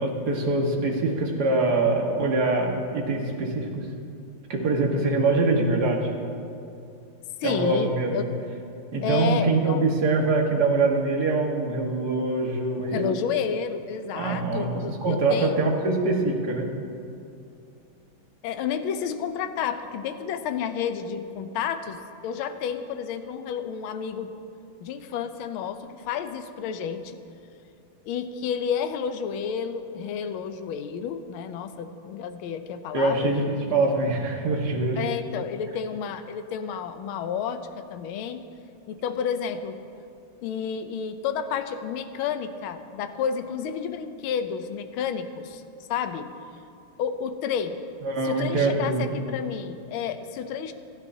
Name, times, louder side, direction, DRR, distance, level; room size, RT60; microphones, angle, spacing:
voice 1, 0.0-3.9 4.5-6.1 7.4-8.3 8.9-13.1 14.1-14.7 15.0-16.7 32.9-35.0 48.0-49.1, right 3 dB, 50° right, 0 dB, 2.0 m, -24 dB
voice 2, 7.4-8.3 9.0-9.8 12.8-15.6 18.4-24.3 24.8-27.2 28.1-33.3 33.7-33.8 35.0-38.4 38.9-39.8 40.4-45.6 45.9-46.3 47.0-47.8 48.2-50.7, left 7 dB, 80° left, 9 dB, 1.5 m, -31 dB
27.5 x 10.5 x 2.8 m, 2.5 s
omnidirectional pair, 2.3 m